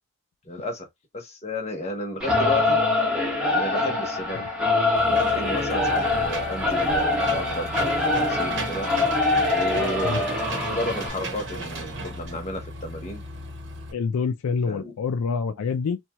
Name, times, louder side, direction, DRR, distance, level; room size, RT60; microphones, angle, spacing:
voice 1, 0.4-0.9 1.1-2.8 3.5-4.6 5.1-8.9 9.5-10.1 10.7-13.2 14.7-14.9, left 1 dB, 30° left, 0.9 m, -33 dB
Singing / Musical instrument, 2.2-11.1, left 2 dB, 5° right, 0.9 m, -24 dB
Engine / Mechanisms, 5.0-13.9, right 1 dB, 60° right, 1.0 m, -35 dB
voice 2, 13.9-16.0, left 5 dB, 85° left, 0.4 m, -26 dB
2.8 x 2.3 x 2.9 m
head